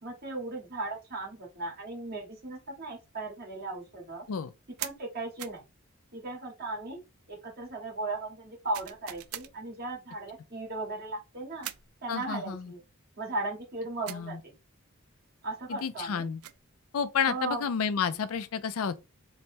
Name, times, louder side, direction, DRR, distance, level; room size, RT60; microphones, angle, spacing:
voice 1, 0.0-4.2 4.8-5.6 6.1-7.0 7.3-11.7 12.0-12.8 13.2-14.5 15.4-16.3 17.3-17.6, right 2 dB, 50° right, 1.6 m, -37 dB
sound 1, 4.8-5.0 5.4-5.6 8.7-9.5 11.6-11.9 14.1-14.3 16.2-16.7, right 13 dB, 80° right, 0.4 m, -40 dB
voice 2, 12.1-12.7 14.1-14.4 15.7-16.4 16.9-19.0, left 6 dB, 80° left, 0.4 m, -31 dB
3.3 x 2.1 x 4.2 m
head